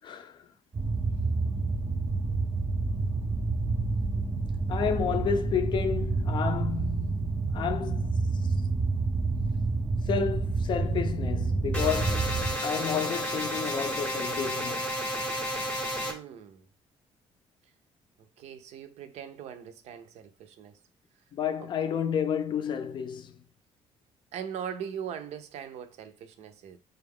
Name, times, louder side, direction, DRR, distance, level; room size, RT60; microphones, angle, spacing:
voice 1, 0.0-0.5 4.7-8.5 10.0-14.9 21.3-23.4, left 7 dB, 45° left, 0.4 m, -31 dB
sound 1, 0.7-12.5, right 3 dB, 20° right, 0.4 m, -28 dB
sound 2, 11.7-16.1, equal, 10° left, 0.7 m, -32 dB
voice 2, 16.0-16.6 18.4-20.7 21.6-21.7 24.3-26.8, right 8 dB, 75° right, 0.5 m, -40 dB
3.9 x 2.3 x 3.4 m
cardioid pair, 135°, 11 cm